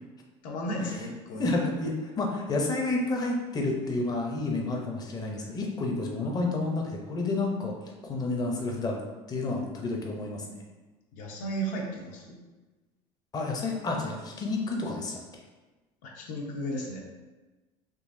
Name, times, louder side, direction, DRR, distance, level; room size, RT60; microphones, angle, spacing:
voice 1, 0.4-1.6 11.1-12.4 16.0-17.0, right 1 dB, 70° left, -1 dB, 0.8 m, -34 dB
voice 2, 1.4-9.0 9.3-10.6 13.3-15.2, left 2 dB, 25° left, 0 dB, 0.6 m, -30 dB
3.8 x 2.6 x 2.6 m, 1.2 s
cardioid pair, 130°, 14 cm